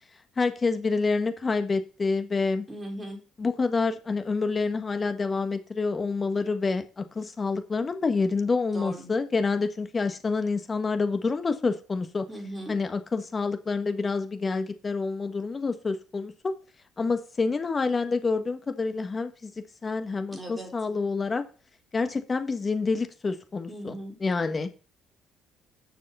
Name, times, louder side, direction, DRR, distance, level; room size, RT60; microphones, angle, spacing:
voice 1, 0.4-2.6 3.4-12.2 12.7-16.5 17.0-19.5 19.8-21.5 21.9-24.7, left 4 dB, 30° left, 8 dB, 1.5 m, -27 dB
voice 2, 2.7-3.2 8.7-9.1 12.3-12.7 20.3-20.7 23.7-24.1, right 1 dB, 10° right, 1 dB, 3.9 m, -38 dB
9.4 x 6.8 x 5.6 m, 0.34 s
cardioid pair, 100°, 0 cm